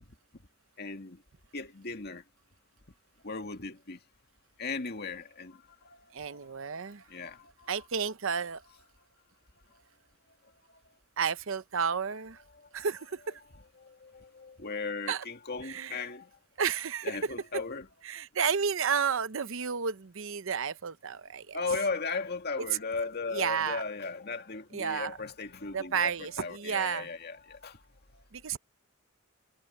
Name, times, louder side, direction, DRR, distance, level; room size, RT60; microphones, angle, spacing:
voice 1, 0.8-1.2 1.5-2.2 3.2-4.0 4.6-7.8 12.8-12.9 13.8-16.3 17.0-17.9 21.5-26.1 26.4-27.8, left 4 dB, 50° left, 2.2 m, -37 dB
voice 2, 6.1-7.0 7.7-8.6 11.2-12.4 12.7-13.4 15.1-15.2 15.6-16.0 16.6-17.3 18.0-21.6 23.3-23.8 24.7-25.2 25.7-27.1 28.3-28.6, right 6 dB, 70° right, 0.8 m, -32 dB
head